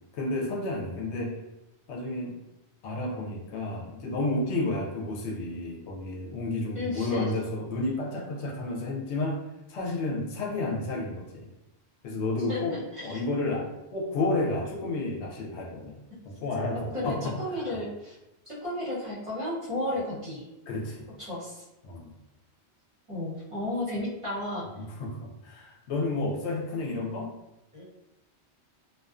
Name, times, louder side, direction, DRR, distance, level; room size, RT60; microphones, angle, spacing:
voice 1, 0.1-1.4 1.9-2.4 2.8-9.4 9.7-11.5 12.0-13.7 13.9-16.0 16.2-17.8 20.7-21.1 21.8-22.2 24.7-27.4, left 2 dB, 85° left, -1 dB, 0.9 m, -31 dB
voice 2, 6.7-7.3 12.5-13.1 16.9-18.2 18.4-20.5 21.2-21.6 23.1-24.6 27.7-27.8, left 1 dB, 30° right, -9 dB, 0.9 m, -33 dB
2.5 x 2.2 x 2.3 m, 0.94 s
omnidirectional pair, 1.1 m